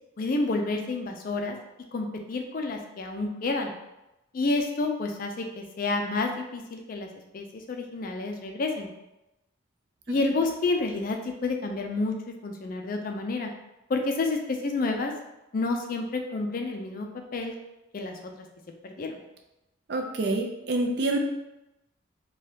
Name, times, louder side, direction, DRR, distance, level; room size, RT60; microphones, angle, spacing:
voice 1, 0.2-1.6 1.9-3.7 4.3-7.1 7.3-8.9 10.1-12.1 12.4-13.5 13.9-15.1 15.5-17.5 17.9-18.2 18.8-19.2, left 3 dB, 45° left, 3 dB, 0.3 m, -29 dB
voice 2, 19.9-21.2, right 2 dB, 55° right, 3 dB, 0.4 m, -27 dB
2.7 x 2.3 x 3.2 m, 0.94 s
head